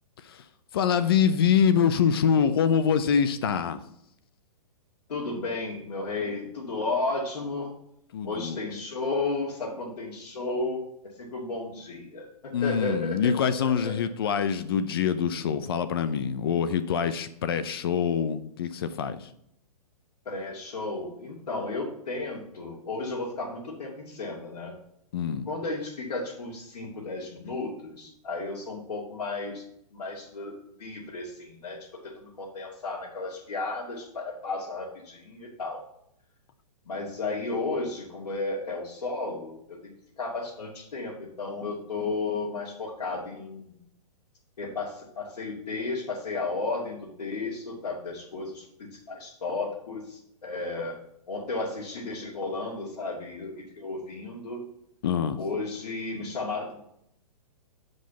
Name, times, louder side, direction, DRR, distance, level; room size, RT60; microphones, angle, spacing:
voice 1, 0.7-3.8 8.1-8.6 12.5-19.3 25.1-25.5 55.0-55.4, left 7 dB, 40° left, 12 dB, 0.6 m, -25 dB
voice 2, 5.1-7.7 8.2-13.9 20.3-24.7 25.5-29.6 29.9-31.8 32.2-35.8 36.9-43.6 44.6-51.0 51.3-54.6 55.4-56.8, left 3 dB, 80° left, -6 dB, 2.6 m, -33 dB
6.8 x 5.3 x 5.8 m, 0.73 s
hypercardioid pair, 170°, 20 cm